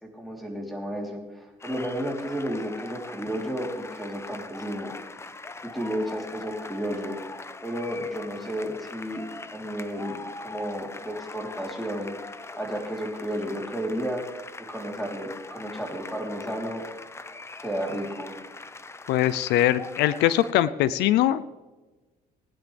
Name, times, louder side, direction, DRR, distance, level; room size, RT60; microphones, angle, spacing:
voice 1, 0.0-5.0 5.6-7.2 7.6-12.1 12.6-14.2 14.6-16.9 17.6-18.4, equal, ahead, 0 dB, 3.5 m, -32 dB
sound 1, 1.6-20.5, left 3 dB, 15° left, 0.7 m, -42 dB
voice 2, 19.1-21.4, left 13 dB, 85° left, 16 dB, 0.6 m, -22 dB
20.0 x 10.5 x 3.4 m, 1.2 s
cardioid pair, 110°, 17 cm